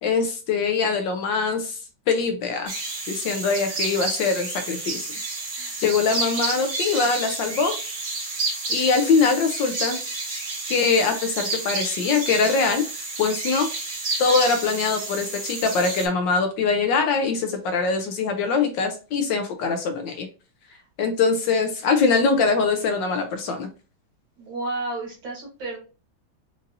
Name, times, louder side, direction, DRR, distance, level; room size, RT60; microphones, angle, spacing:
voice 1, 0.0-1.8 2.1-2.7 3.1-5.1 5.8-7.8 8.7-10.0 10.7-12.8 13.2-13.7 14.2-20.3 21.0-23.7, left 4 dB, 70° left, 6 dB, 1.2 m, -22 dB
sound 1, 2.7-16.1, right 3 dB, 55° right, 1.6 m, -30 dB
voice 2, 5.5-5.8 20.7-20.8 24.4-25.8, right 2 dB, 70° right, -2 dB, 2.6 m, -32 dB
5.2 x 2.6 x 2.5 m, 0.34 s
omnidirectional pair, 2.3 m